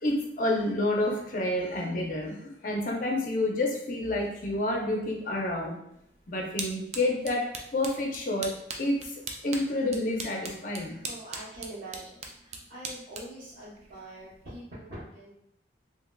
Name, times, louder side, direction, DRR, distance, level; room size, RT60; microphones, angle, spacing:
voice 1, 0.0-5.8 6.3-11.0, left 1 dB, 45° left, 0 dB, 0.6 m, -29 dB
sound 1, 5.9-14.6, right 4 dB, 35° right, 0.3 m, -42 dB
voice 2, 11.0-12.1 12.4-15.3, right 1 dB, 55° right, -12 dB, 1.0 m, -44 dB
3.3 x 2.9 x 2.2 m, 0.78 s
head